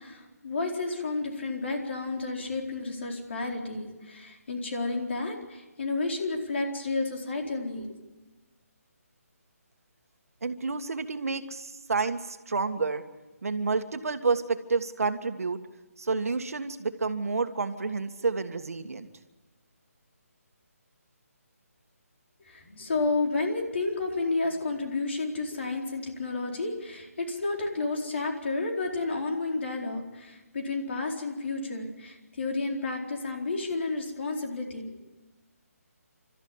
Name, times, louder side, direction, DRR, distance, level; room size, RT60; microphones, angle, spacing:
voice 1, 0.0-7.9 22.4-35.0, left 3 dB, 45° left, 1 dB, 4.3 m, -31 dB
voice 2, 10.4-13.0 13.4-15.6 16.0-19.1, right 4 dB, 65° right, 8 dB, 1.8 m, -29 dB
29.0 x 14.0 x 9.7 m, 1.2 s
hypercardioid pair, 170°, 8 cm